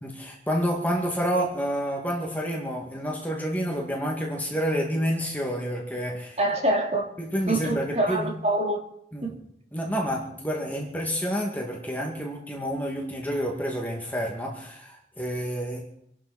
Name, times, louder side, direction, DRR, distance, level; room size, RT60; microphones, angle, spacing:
voice 1, 0.0-6.4 7.2-8.3 9.1-9.3 9.7-15.8, equal, 10° left, -1 dB, 2.2 m, -29 dB
voice 2, 6.4-7.1 7.5-8.8 9.2-9.4, right 1 dB, 35° right, 1 dB, 2.8 m, -25 dB
27.0 x 11.5 x 4.3 m, 0.73 s
head